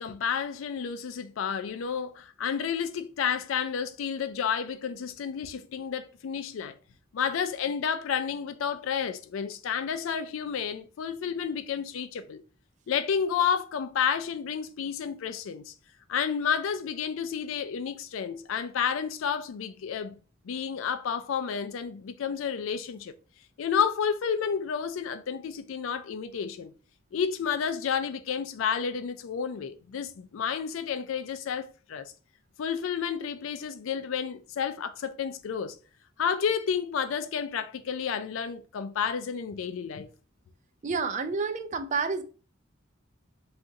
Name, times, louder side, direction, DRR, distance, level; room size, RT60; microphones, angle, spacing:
voice 1, 0.0-6.7 7.1-12.4 12.9-15.7 16.1-20.1 20.4-23.2 23.6-26.7 27.1-32.1 32.6-35.8 36.2-40.1, left 7 dB, 70° left, 0.4 m, -31 dB
voice 2, 40.8-42.2, right 4 dB, 35° right, 0.4 m, -29 dB
2.6 x 2.4 x 3.9 m
head